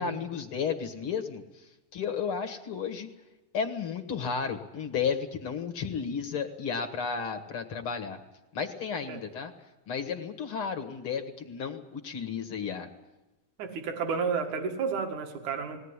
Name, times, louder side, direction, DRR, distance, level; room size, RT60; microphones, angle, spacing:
voice 1, 0.0-1.4 1.9-3.1 3.5-8.2 8.5-9.5 9.9-12.9, left 6 dB, 50° left, 6 dB, 1.8 m, -33 dB
voice 2, 13.6-15.8, right 5 dB, 60° right, 4 dB, 3.2 m, -31 dB
20.0 x 18.0 x 9.8 m, 1.0 s
omnidirectional pair, 4.1 m